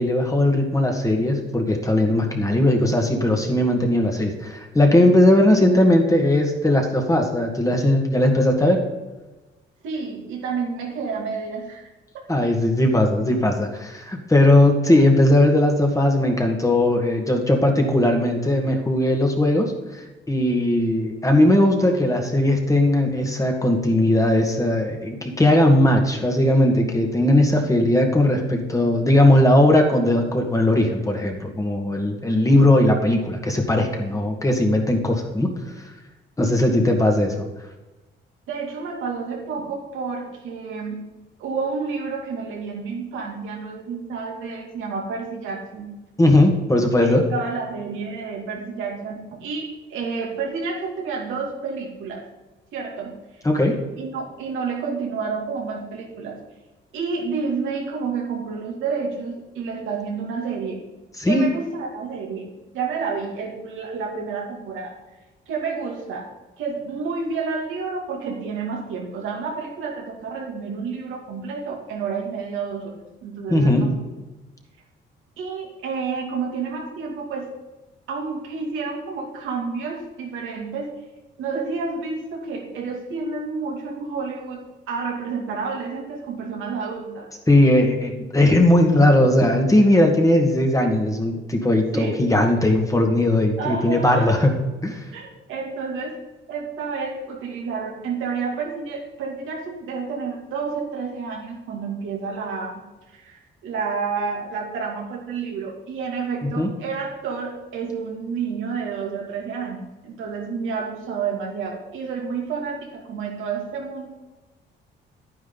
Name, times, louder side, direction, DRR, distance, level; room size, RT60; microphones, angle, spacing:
voice 1, 0.0-8.8 12.3-19.7 20.3-35.5 36.4-37.4 46.2-47.2 53.4-53.8 61.2-61.5 73.5-73.9 87.5-94.6 94.8-95.0 106.4-106.7, left 1 dB, 15° left, 2 dB, 1.9 m, -18 dB
voice 2, 9.8-11.9 12.1-12.3 38.5-41.0 41.4-45.9 47.0-52.2 52.7-53.1 54.0-56.4 56.9-60.8 61.3-62.5 62.7-64.9 65.5-66.3 66.6-73.0 73.2-74.0 75.4-77.5 78.1-80.9 81.4-87.3 91.9-92.3 93.6-94.3 95.1-96.2 96.5-102.8 103.1-114.1, right 5 dB, 85° right, -1 dB, 2.6 m, -30 dB
10.5 x 9.6 x 4.0 m, 1.1 s
cardioid pair, 90°, 20 cm